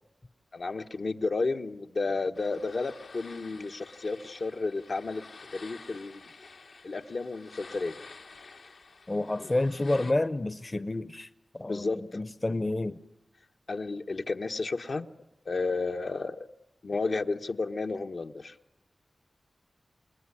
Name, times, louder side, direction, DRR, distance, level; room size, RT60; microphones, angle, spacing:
voice 1, 0.5-5.2 5.5-6.2 6.8-7.9 9.4-9.5 11.7-12.0 13.7-15.1 15.4-16.5 16.8-18.6, left 3 dB, 65° left, 5 dB, 1.2 m, -32 dB
sound 1, 2.3-10.1, left 4 dB, 85° left, 2.5 m, -50 dB
voice 2, 9.1-11.3 11.5-13.0, left 2 dB, 30° left, 14 dB, 0.9 m, -29 dB
28.5 x 20.0 x 9.9 m, 1.0 s
wide cardioid pair, 70°, 0 cm